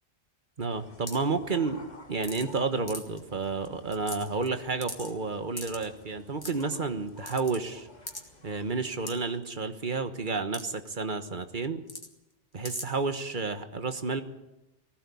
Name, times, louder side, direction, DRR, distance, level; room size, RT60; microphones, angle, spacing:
voice 1, 0.6-7.9 8.4-11.8 12.5-14.2, right 4 dB, 45° right, 9 dB, 1.5 m, -31 dB
sound 1, 0.7-9.4, left 2 dB, 35° left, 2.0 m, -53 dB
sound 2, 1.1-1.3 2.2-2.6 2.9-3.2 3.6-3.7 3.9-4.5 4.8-5.1 5.6-5.9 6.4-6.6 7.3-7.6 8.1-8.2 9.1-9.2 10.5-10.6 10.9-11.0 11.9-12.1 12.6-12.8, left 1 dB, 20° left, 2.4 m, -39 dB
20.0 x 16.0 x 8.6 m, 0.94 s
omnidirectional pair, 1.2 m